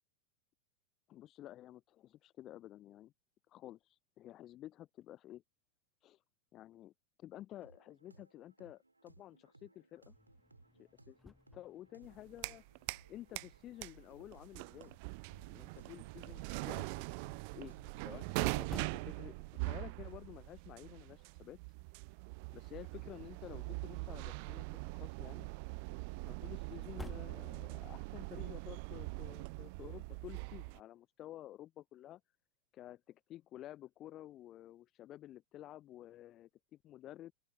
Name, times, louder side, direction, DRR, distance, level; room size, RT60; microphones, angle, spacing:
voice 1, 1.1-3.1 3.5-5.4 6.0-6.2 6.5-6.9 7.2-10.1 10.8-12.6 13.1-14.9 15.5-16.9 17.5-19.4 19.6-21.6 22.5-25.5 26.2-32.2 32.7-37.3, left 13 dB, 35° left, 0.5 m, -52 dB
sound 1, 7.6-20.4, right 2 dB, 85° right, 4.7 m, -64 dB
sound 2, 10.0-28.0, left 2 dB, 10° left, 1.3 m, -60 dB
sound 3, 12.0-13.1 13.4-30.8, right 34 dB, 45° right, 0.4 m, -42 dB
open air
figure-of-eight pair, 90°, 0 cm